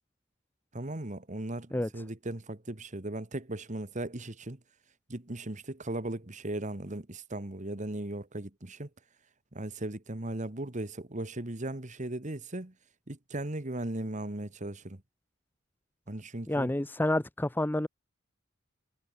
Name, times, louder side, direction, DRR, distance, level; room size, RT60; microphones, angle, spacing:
voice 1, 0.7-4.6 5.1-8.9 9.5-12.7 13.1-15.0 16.1-16.7, right 1 dB, 35° right, 1.7 m, -37 dB
voice 2, 16.5-17.9, left 1 dB, 10° left, 0.5 m, -29 dB
head